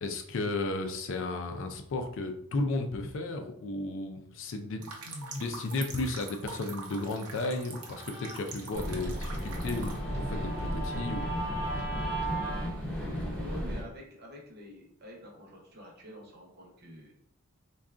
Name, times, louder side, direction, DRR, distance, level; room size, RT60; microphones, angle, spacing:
voice 1, 0.0-11.3, left 2 dB, 60° left, 6 dB, 0.4 m, -34 dB
sound 1, 4.8-10.0, right 4 dB, 85° right, 0.6 m, -44 dB
Guitar, 7.2-12.7, right 2 dB, 30° left, 0.9 m, -39 dB
sound 2, 8.7-13.8, equal, 5° left, 0.7 m, -34 dB
voice 2, 13.2-17.1, equal, 45° right, -1 dB, 0.8 m, -48 dB
3.6 x 2.2 x 2.4 m, 0.72 s
head